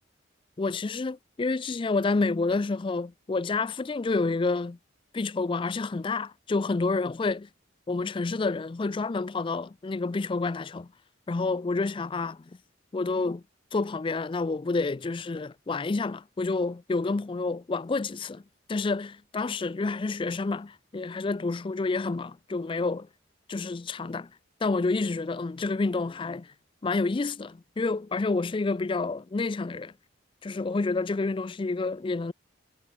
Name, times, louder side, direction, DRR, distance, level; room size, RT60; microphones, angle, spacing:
voice 1, 0.6-4.8 5.1-7.5 7.9-10.9 11.3-12.5 12.9-13.4 13.7-18.4 18.7-23.1 23.5-24.3 24.6-26.5 26.8-29.9 30.4-32.3, left 3 dB, 25° left, 0.4 m, -29 dB
head